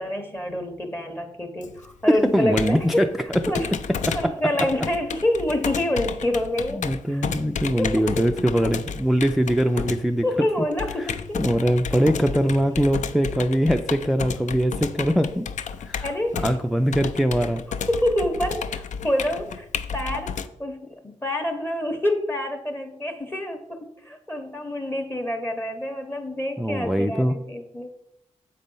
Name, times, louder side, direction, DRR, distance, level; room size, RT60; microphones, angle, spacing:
voice 1, 0.0-3.1 3.5-3.7 4.1-6.8 7.1-7.3 7.8-8.3 10.2-11.4 16.0-16.5 17.9-19.7 19.9-27.9, left 1 dB, 20° left, 5 dB, 0.8 m, -27 dB
Computer keyboard, 1.6-20.5, left 6 dB, 75° left, 0.4 m, -32 dB
voice 2, 2.1-3.1 3.3-3.4 4.1-4.3 6.7-10.3 11.0-11.1 11.3-15.5 15.8-16.1 16.4-17.6 26.6-27.4, equal, ahead, 5 dB, 0.3 m, -22 dB
7.5 x 4.2 x 5.3 m, 0.81 s
wide cardioid pair, 110°, 12 cm